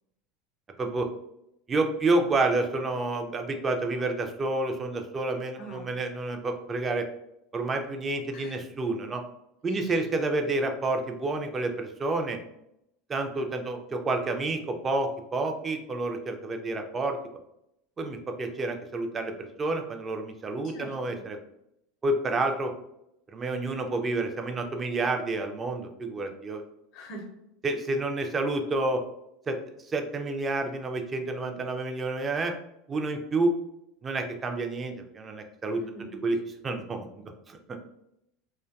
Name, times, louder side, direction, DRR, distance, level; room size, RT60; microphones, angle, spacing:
voice 1, 1.7-7.1 7.5-9.2 9.6-12.4 13.1-17.2 18.0-21.4 22.0-22.7 23.3-26.6 27.6-29.0 29.5-29.6 29.9-32.5 32.9-33.5 34.0-35.8 36.2-36.4 36.6-37.8, right 2 dB, 25° right, 4 dB, 0.4 m, -29 dB
voice 2, 5.6-5.9 8.3-8.6 9.7-9.9 20.7-21.2 26.9-27.2 35.8-36.2, right 1 dB, 55° left, 3 dB, 0.6 m, -44 dB
2.4 x 2.2 x 2.3 m, 0.80 s
figure-of-eight pair, 75°, 0 cm